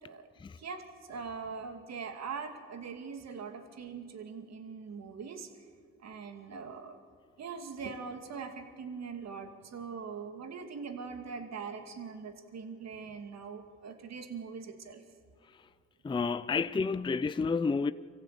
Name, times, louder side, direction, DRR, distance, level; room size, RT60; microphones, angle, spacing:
voice 1, 0.0-0.3 0.6-5.5 6.0-7.0 7.4-15.0, right 5 dB, 55° right, 2.4 m, -42 dB
voice 2, 16.0-17.9, left 4 dB, 15° left, 0.5 m, -30 dB
24.5 x 15.5 x 8.3 m
supercardioid pair, 70°, 32 cm